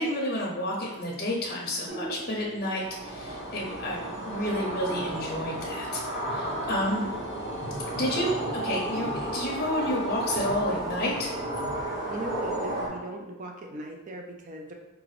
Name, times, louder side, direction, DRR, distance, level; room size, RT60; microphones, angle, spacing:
voice 1, 0.0-6.0 6.3-7.1 7.9-8.4 8.6-11.3, left 1 dB, 45° left, -4 dB, 0.6 m, -30 dB
sound 1, 1.9-10.9, right 2 dB, 60° right, 0.9 m, -47 dB
sound 2, 2.5-12.6, right 2 dB, 85° right, 1.4 m, -50 dB
sound 3, 2.7-12.9, right 1 dB, 15° right, 1.0 m, -33 dB
voice 2, 12.1-14.7, right 1 dB, 35° right, 2 dB, 0.4 m, -39 dB
4.7 x 2.5 x 3.1 m, 1.0 s
head